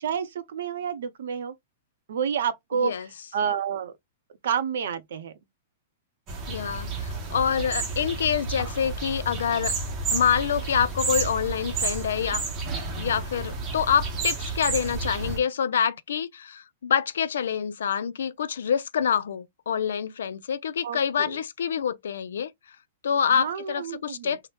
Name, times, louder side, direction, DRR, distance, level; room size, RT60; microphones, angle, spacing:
voice 1, 0.0-1.5 2.1-2.9 3.3-3.9 4.4-5.3 20.8-21.4 23.3-24.4, right 7 dB, 75° right, 0.6 m, -29 dB
sound 1, 6.3-15.4, right 4 dB, 25° right, 0.7 m, -31 dB
voice 2, 6.5-9.7 10.1-12.4 13.0-22.5 23.0-24.4, left 7 dB, 90° left, 0.4 m, -26 dB
2.7 x 2.1 x 3.1 m
hypercardioid pair, 160°, 0 cm